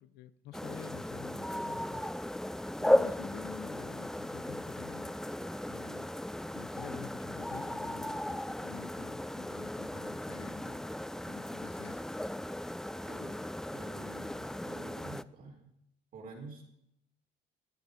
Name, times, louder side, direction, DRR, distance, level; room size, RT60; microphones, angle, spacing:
voice 1, 0.0-2.0 2.8-6.2 6.5-12.2, left 13 dB, 85° left, 15 dB, 0.7 m, -50 dB
sound 1, 0.5-15.2, left 1 dB, 5° left, 0.4 m, -36 dB
voice 2, 13.0-13.4 13.7-15.7 16.1-16.6, right 3 dB, 55° right, 1 dB, 3.7 m, -49 dB
14.5 x 9.7 x 5.1 m, 0.77 s
cardioid pair, 110°, 17 cm